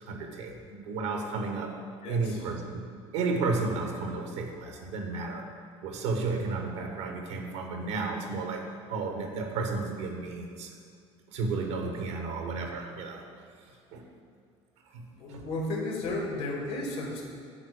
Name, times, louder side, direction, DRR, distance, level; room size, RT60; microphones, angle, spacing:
voice 1, 0.1-1.8 2.1-2.9 3.1-5.5 5.8-10.7 11.3-13.2 13.9-14.1 14.9-15.4, right 3 dB, 75° right, 3 dB, 1.3 m, -33 dB
voice 2, 2.0-2.5 15.2-17.3, left 2 dB, 70° left, 0 dB, 2.0 m, -33 dB
9.8 x 4.0 x 6.6 m, 2.3 s
hypercardioid pair, 65°, 15 cm